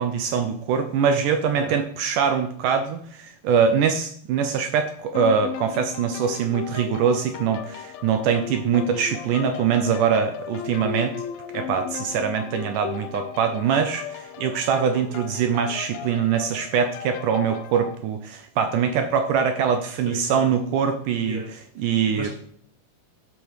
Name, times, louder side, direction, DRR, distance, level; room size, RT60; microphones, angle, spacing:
voice 1, 0.0-11.2 11.5-21.4 21.8-22.3, right 7 dB, 75° right, 7 dB, 2.1 m, -23 dB
sound 1, 5.1-18.0, left 9 dB, 85° left, 2.5 m, -36 dB
voice 2, 20.0-20.5 21.2-21.5 21.8-22.3, left 3 dB, 30° left, -4 dB, 1.7 m, -36 dB
11.5 x 5.3 x 4.7 m, 0.62 s
omnidirectional pair, 4.1 m